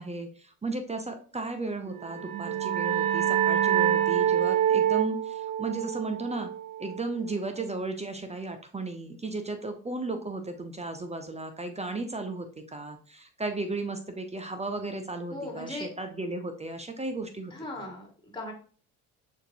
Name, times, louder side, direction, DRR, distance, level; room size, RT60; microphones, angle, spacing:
voice 1, 0.0-6.5 6.8-17.9, right 2 dB, 15° right, 6 dB, 0.7 m, -35 dB
sound 1, 2.0-7.4, right 10 dB, 60° right, 0.5 m, -26 dB
voice 2, 15.3-15.9 17.5-18.5, left 2 dB, 10° left, 1 dB, 1.9 m, -38 dB
6.5 x 2.7 x 2.7 m, 0.42 s
hypercardioid pair, 55°, 40 cm